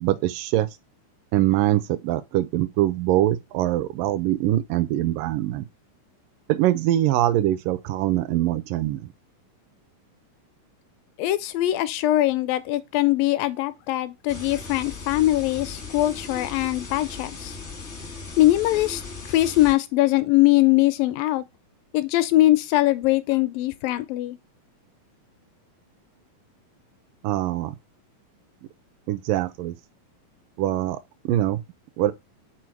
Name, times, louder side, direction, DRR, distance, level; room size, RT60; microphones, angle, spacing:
voice 1, 0.0-0.7 1.3-5.7 6.5-9.1 27.2-27.8 29.1-29.7 30.6-31.0 31.2-31.6 32.0-32.1, right 14 dB, 80° right, 2.2 m, -23 dB
voice 2, 11.2-17.6 18.4-19.0 19.3-21.4 21.9-24.4, left 16 dB, 80° left, 2.2 m, -21 dB
sound 1, 14.3-19.7, left 4 dB, 60° left, 0.7 m, -37 dB
6.3 x 4.6 x 4.6 m
omnidirectional pair, 4.2 m